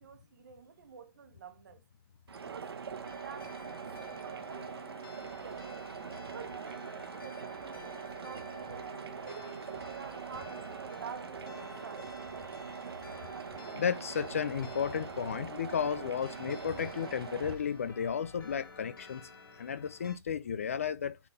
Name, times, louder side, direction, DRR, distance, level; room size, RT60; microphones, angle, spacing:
voice 1, 0.0-1.8 2.4-5.9 6.3-8.9 9.2-12.1, right 7 dB, 50° right, 1.2 m, -49 dB
sound 1, 2.3-17.5, right 6 dB, 90° right, 1.3 m, -43 dB
sound 2, 3.0-20.2, left 2 dB, 60° left, 3.3 m, -52 dB
voice 2, 13.7-19.3 19.6-21.2, left 7 dB, 35° left, 0.3 m, -33 dB
9.7 x 3.9 x 2.7 m
hypercardioid pair, 175°, 13 cm